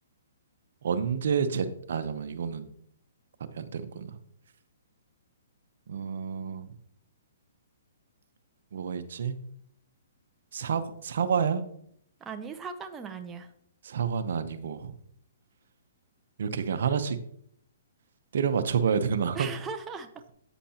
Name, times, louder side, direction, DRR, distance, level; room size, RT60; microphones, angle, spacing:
voice 1, 0.8-2.7 3.4-4.2 5.9-6.8 8.7-9.4 10.5-11.6 13.8-15.0 16.4-17.2 18.3-19.5, right 7 dB, 65° right, 11 dB, 0.8 m, -29 dB
voice 2, 12.2-13.5 19.3-20.3, right 5 dB, 15° right, 5 dB, 0.7 m, -38 dB
8.8 x 8.2 x 2.9 m, 0.68 s
hypercardioid pair, 140°, 0 cm